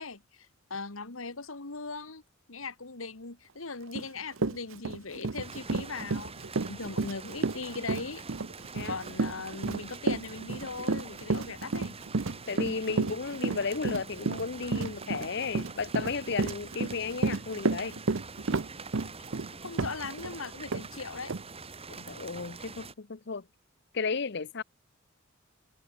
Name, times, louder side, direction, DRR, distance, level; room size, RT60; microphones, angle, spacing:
voice 1, 0.0-2.2 2.5-6.3 6.7-8.2 8.9-12.0 19.6-21.3, left 4 dB, 85° left, 2.1 m, -39 dB
Run, 3.9-4.1 4.4-20.3 20.7-20.8 21.3-21.4, right 3 dB, 70° right, 0.8 m, -31 dB
sound 1, 5.4-22.9, right 4 dB, 30° right, 4.8 m, -45 dB
voice 2, 12.5-18.0 21.9-23.4 23.9-24.6, left 4 dB, 55° left, 0.8 m, -34 dB
head